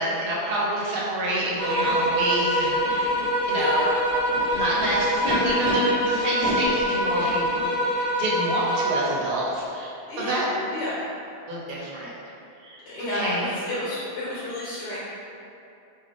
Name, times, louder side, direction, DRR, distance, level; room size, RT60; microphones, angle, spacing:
voice 1, 0.0-3.1 3.5-3.9 4.5-7.5 8.2-9.9 10.2-10.5 11.5-12.1 12.6-12.8 13.1-13.5, right 1 dB, 65° right, -5 dB, 0.8 m, -27 dB
sound 1, 1.6-9.0, equal, 50° left, 1.0 m, -25 dB
Animal, 1.8-1.9 2.7-3.2 4.1-5.7 6.4-7.6, left 2 dB, 30° left, 0.7 m, -33 dB
voice 2, 3.6-3.9 10.1-10.5 10.7-11.0 12.9-15.0, left 1 dB, 80° left, -9 dB, 0.9 m, -30 dB
2.4 x 2.3 x 3.3 m, 2.7 s
omnidirectional pair, 1.1 m